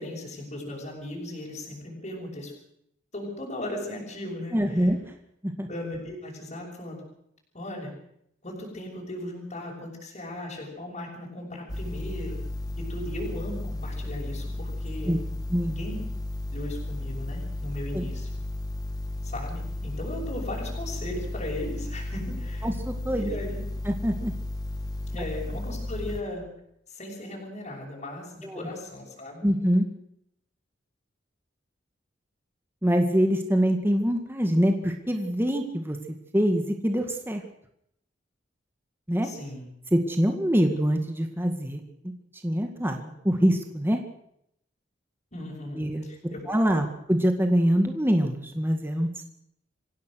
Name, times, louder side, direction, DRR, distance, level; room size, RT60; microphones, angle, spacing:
voice 1, 0.0-2.5 3.1-4.9 5.7-7.0 7.5-7.9 8.4-12.4 12.8-15.1 15.7-16.0 16.5-18.3 19.2-22.7 23.1-23.6 25.1-26.4 26.9-29.4 39.2-39.7 45.3-46.8, left 1 dB, 40° left, -3 dB, 6.3 m, -37 dB
voice 2, 4.5-5.0 5.4-5.7 15.0-15.2 15.5-15.8 17.9-18.1 22.6-23.3 23.9-24.3 28.4-28.6 29.4-29.9 32.8-36.0 36.3-37.4 39.1-39.3 39.9-42.1 42.4-44.0 45.8-46.1 46.5-49.3, equal, 10° right, 4 dB, 2.0 m, -24 dB
sound 1, 11.7-26.2, left 1 dB, 20° left, 1.8 m, -34 dB
26.0 x 16.5 x 6.5 m, 0.74 s
head